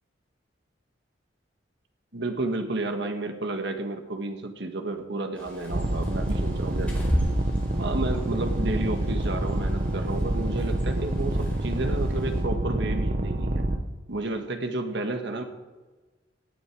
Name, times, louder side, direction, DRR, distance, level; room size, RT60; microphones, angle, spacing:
voice 1, 2.1-6.9 7.8-13.7 14.1-15.4, right 2 dB, 70° right, 6 dB, 1.6 m, -31 dB
Bird, 5.3-12.4, equal, 10° left, 4.5 m, -36 dB
sound 1, 5.7-13.8, right 1 dB, 45° right, 1.0 m, -27 dB
18.0 x 9.1 x 4.8 m, 1.2 s
head